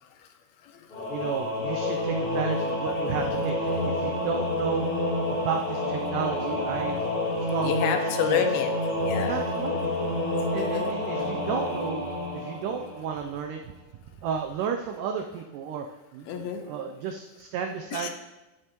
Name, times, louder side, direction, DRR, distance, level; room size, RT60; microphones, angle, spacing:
voice 1, 0.6-1.5 2.7-3.4 7.6-8.7 9.0-9.4 10.6-10.9 11.2-11.7 16.2-16.6 17.9-18.1, left 8 dB, 80° left, 6 dB, 2.6 m, -31 dB
Singing / Musical instrument, 0.9-13.4, left 1 dB, 40° left, 2.7 m, -29 dB
voice 2, 1.1-4.9 5.3-7.0 7.4-8.0 8.3-8.4 9.2-9.9 10.5-12.0 12.3-13.6 14.2-15.9 16.1-18.1, right 7 dB, 90° right, 4 dB, 1.8 m, -33 dB
10.0 x 9.8 x 3.0 m, 1.1 s
omnidirectional pair, 4.4 m